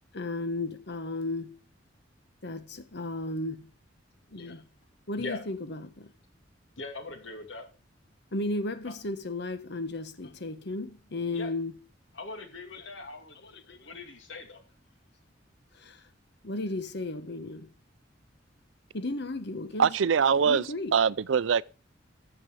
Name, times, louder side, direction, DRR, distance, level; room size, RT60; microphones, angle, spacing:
voice 1, 0.1-1.6 2.4-3.7 4.3-4.7 5.1-6.1 8.3-11.8 12.7-12.9 13.4-13.9 15.7-16.0 16.4-17.7 18.9-20.0 20.4-20.9, left 2 dB, 65° left, 1.3 m, -34 dB
voice 2, 6.8-7.7 8.8-8.9 11.3-11.5 12.1-14.6, left 3 dB, 80° left, 2.5 m, -41 dB
voice 3, 19.8-20.6 20.9-21.6, right 6 dB, 85° right, 0.4 m, -23 dB
14.0 x 7.3 x 5.0 m
head